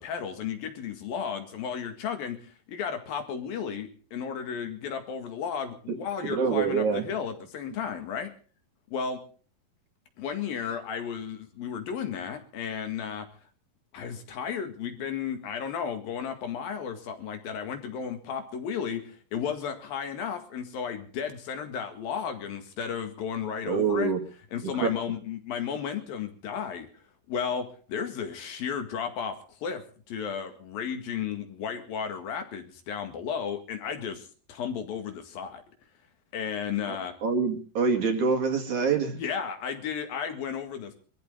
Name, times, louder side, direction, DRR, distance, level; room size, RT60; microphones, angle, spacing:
voice 1, 0.0-8.3 8.9-9.2 10.2-13.3 13.9-24.1 24.5-26.9 27.3-35.6 36.3-37.1 39.1-40.9, left 7 dB, 65° left, 7 dB, 3.5 m, -34 dB
voice 2, 6.2-7.0 23.7-24.2 24.8-24.9 36.9-37.0 37.2-39.2, right 5 dB, 50° right, 3 dB, 3.4 m, -25 dB
23.0 x 14.5 x 3.8 m, 0.41 s
omnidirectional pair, 4.7 m